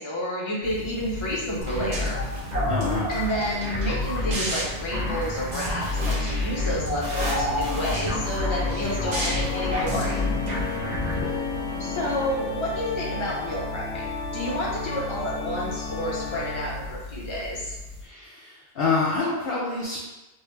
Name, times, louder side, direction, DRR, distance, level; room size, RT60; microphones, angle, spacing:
voice 1, 0.0-2.2 3.1-10.3 11.8-14.1 14.3-17.8, equal, 30° left, -5 dB, 0.8 m, -30 dB
sound 1, 0.6-18.0, left 2 dB, 55° right, 1.5 m, -39 dB
sound 2, 1.6-11.2, left 1 dB, 40° right, 0.9 m, -28 dB
voice 2, 2.7-3.1 11.1-11.3 18.0-20.0, left 3 dB, 60° left, -5 dB, 0.8 m, -27 dB
Organ, 5.2-17.0, left 4 dB, 80° left, 1.0 m, -34 dB
3.3 x 2.7 x 3.1 m, 1.0 s
omnidirectional pair, 1.2 m